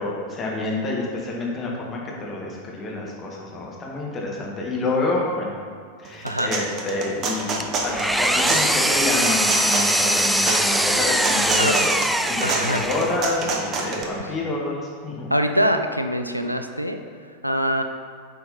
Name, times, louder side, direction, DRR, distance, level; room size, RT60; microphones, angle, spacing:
voice 1, 0.0-5.5 6.0-11.9 12.2-15.3, left 2 dB, 25° left, -3 dB, 1.5 m, -28 dB
sound 1, 6.0-14.0, right 3 dB, 30° right, 0.9 m, -28 dB
Engine, 7.6-13.3, right 1 dB, 5° right, 0.3 m, -22 dB
voice 2, 12.4-12.9 15.3-17.0 17.4-17.8, equal, 90° right, 7 dB, 0.4 m, -23 dB
8.0 x 4.7 x 4.0 m, 2.2 s
figure-of-eight pair, 90°, 0 cm